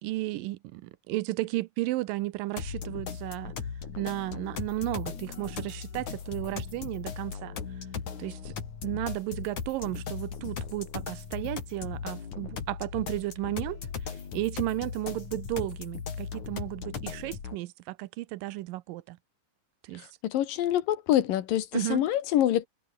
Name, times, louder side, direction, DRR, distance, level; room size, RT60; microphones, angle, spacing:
voice 1, 0.0-3.5 4.0-7.6 8.2-8.5 8.8-13.8 14.1-19.2 19.8-20.1 21.7-22.0, right 18 dB, 85° right, 2.4 m, -34 dB
sound 1, 2.6-17.6, left 6 dB, 60° left, 4.8 m, -38 dB
voice 2, 20.2-22.7, left 12 dB, 80° left, 3.1 m, -25 dB
omnidirectional pair, 3.9 m